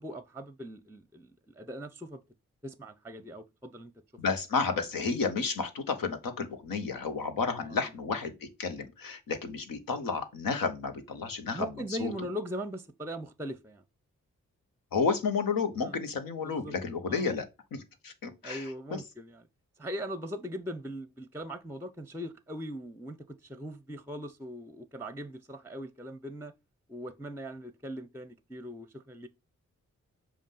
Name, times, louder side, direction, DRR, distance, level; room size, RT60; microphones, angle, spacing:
voice 1, 0.0-2.2 2.6-3.9 7.6-7.9 11.5-13.8 15.8-16.0 16.4-16.7 17.1-17.3 18.4-19.5 19.8-26.5 26.9-29.3, equal, 10° right, 0.7 m, -40 dB
voice 2, 4.2-11.7 12.0-12.1 14.9-18.6 18.9-19.0, left 5 dB, 85° left, 1.1 m, -31 dB
7.2 x 2.5 x 5.4 m
supercardioid pair, 45°, 33 cm